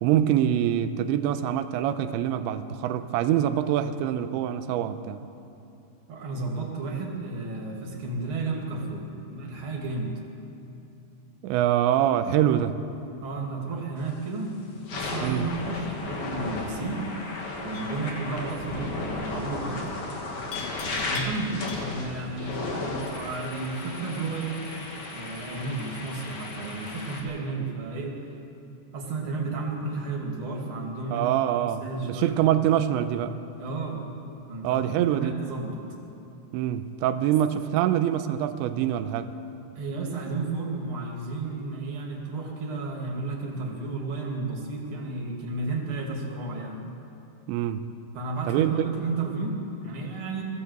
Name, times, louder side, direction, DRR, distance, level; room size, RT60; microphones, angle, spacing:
voice 1, 0.0-5.2 11.4-12.8 15.2-15.5 31.1-33.4 34.6-35.4 36.5-39.3 47.5-47.8 48.5-48.9, right 11 dB, 85° right, 10 dB, 3.0 m, -25 dB
voice 2, 6.1-9.1 9.3-10.1 13.2-14.5 14.9-17.1 17.6-19.9 21.1-24.6 25.1-28.2 28.9-31.3 31.8-32.4 33.6-34.1 34.5-35.8 39.8-46.9 48.1-50.4, right 3 dB, 35° right, -1 dB, 2.6 m, -32 dB
sound 1, 14.0-14.3 14.7-27.2, left 3 dB, 45° left, 3.5 m, -35 dB
Livestock farm animals working animals, 17.7-18.1 20.5-22.2, left 6 dB, 75° left, 3.8 m, -41 dB
21.0 x 15.5 x 8.0 m, 2.8 s
omnidirectional pair, 5.2 m